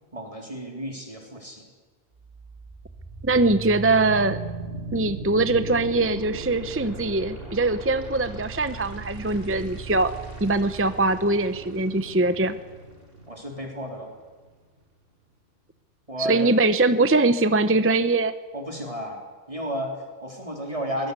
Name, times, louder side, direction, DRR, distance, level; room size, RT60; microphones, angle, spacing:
voice 1, 0.0-1.7 13.3-14.1 16.1-16.5 18.5-19.2 19.5-21.1, equal, 30° right, 1 dB, 3.7 m, -32 dB
sound 1, 2.2-14.2, right 3 dB, 55° right, 6.1 m, -38 dB
voice 2, 3.2-4.4 4.9-10.1 10.4-12.6 16.2-18.3, right 2 dB, 15° right, 11 dB, 0.8 m, -22 dB
23.0 x 20.0 x 8.3 m, 1.4 s
omnidirectional pair, 1.2 m